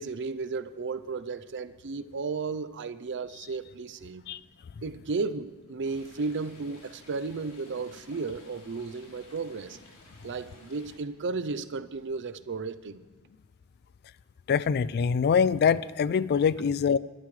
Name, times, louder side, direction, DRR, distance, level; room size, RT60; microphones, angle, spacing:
voice 1, 0.0-4.2 4.8-9.8 10.2-13.0, right 4 dB, 55° right, 0.6 m, -34 dB
Stream, 5.8-11.0, left 2 dB, 85° left, 3.3 m, -54 dB
voice 2, 14.5-17.0, left 6 dB, 50° left, 0.3 m, -24 dB
21.5 x 12.0 x 3.2 m
head